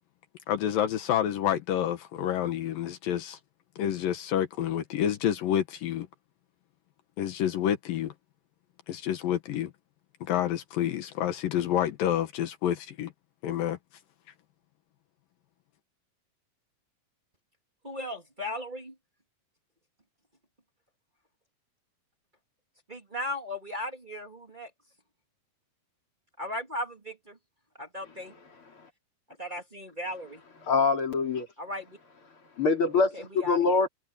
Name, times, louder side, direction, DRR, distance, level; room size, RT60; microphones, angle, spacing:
voice 1, 0.5-3.4 3.8-6.1 7.2-8.1 8.9-9.7 10.2-13.1 13.4-13.8, left 10 dB, 80° left, 3.0 m, -28 dB
voice 2, 17.8-18.9 22.9-24.7 26.4-27.4 27.8-28.3 29.4-30.4 31.6-32.0 33.1-33.8, left 1 dB, 15° right, 2.0 m, -37 dB
voice 3, 30.6-31.5 32.6-33.9, left 4 dB, 40° left, 3.7 m, -24 dB
omnidirectional pair, 4.0 m